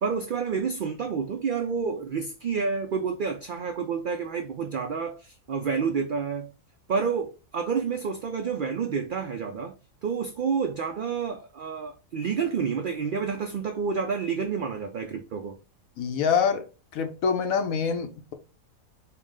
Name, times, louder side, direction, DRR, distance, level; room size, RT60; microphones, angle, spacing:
voice 1, 0.0-6.5 6.9-9.7 10.0-15.6, right 6 dB, 85° right, 0.4 m, -29 dB
voice 2, 16.0-16.6 16.9-18.3, left 6 dB, 85° left, 1.2 m, -25 dB
4.8 x 2.1 x 3.6 m
omnidirectional pair, 1.4 m